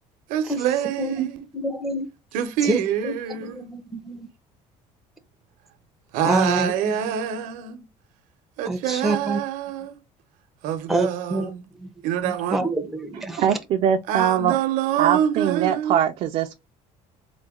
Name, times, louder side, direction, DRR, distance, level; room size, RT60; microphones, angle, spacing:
voice 1, 0.3-1.5 2.3-3.7 6.1-7.9 8.6-10.0 10.6-11.6 12.0-12.7 14.1-16.0, right 9 dB, 75° right, 0.8 m, -26 dB
voice 2, 1.5-2.1 2.6-3.1 3.4-4.3 6.2-6.7 7.0-7.1 8.7-9.4 10.9-11.5 11.8-11.9 12.2-13.4, right 1 dB, ahead, 0.6 m, -26 dB
voice 3, 13.4-14.6 15.0-16.5, right 9 dB, 50° right, 0.4 m, -22 dB
3.9 x 2.2 x 3.5 m
cardioid pair, 155°, 14 cm